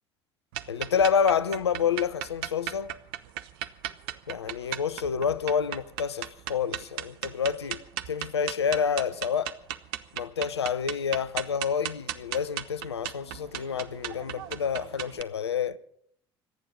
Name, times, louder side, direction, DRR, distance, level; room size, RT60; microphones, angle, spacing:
sound 1, 0.5-15.2, right 13 dB, 65° right, 0.8 m, -37 dB
voice 1, 0.7-3.0 4.3-7.8 8.1-9.6 10.1-15.8, left 7 dB, 80° left, 0.6 m, -28 dB
26.0 x 9.3 x 5.2 m
figure-of-eight pair, 60°, 14 cm